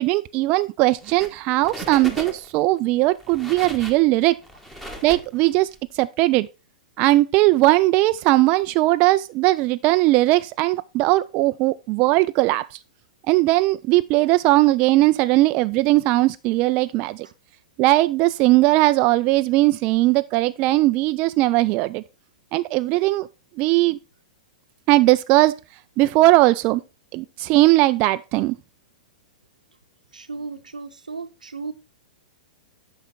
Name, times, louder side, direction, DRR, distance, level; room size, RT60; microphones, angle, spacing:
voice 1, 0.0-4.4 5.0-6.5 7.0-12.8 13.3-17.3 17.8-22.0 22.5-23.3 23.6-24.0 24.9-25.5 26.0-26.8 27.1-28.6, right 18 dB, 35° right, 0.3 m, -19 dB
sound 1, 1.0-1.4 1.6-2.6 3.1-5.8, equal, 5° left, 1.5 m, -37 dB
voice 2, 30.1-31.7, right 4 dB, 85° right, 0.8 m, -35 dB
8.5 x 5.6 x 4.0 m
figure-of-eight pair, 105°, 4 cm